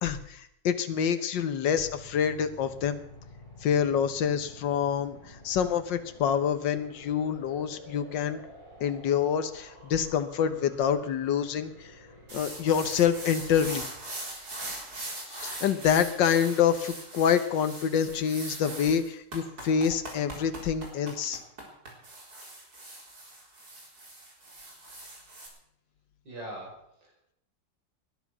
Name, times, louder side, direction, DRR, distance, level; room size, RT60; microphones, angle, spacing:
voice 1, 0.0-3.0 3.6-8.4 8.8-11.9 12.3-13.9 15.3-21.4, left 8 dB, 85° left, 10 dB, 1.7 m, -27 dB
sound 1, 1.7-13.6, equal, 25° left, 7.5 m, -51 dB
sound 2, 12.3-25.5, right 2 dB, 55° right, 4.5 m, -41 dB
voice 2, 26.2-27.3, right 1 dB, 85° right, -2 dB, 5.8 m, -43 dB
20.0 x 10.5 x 6.1 m, 0.72 s
omnidirectional pair, 1.9 m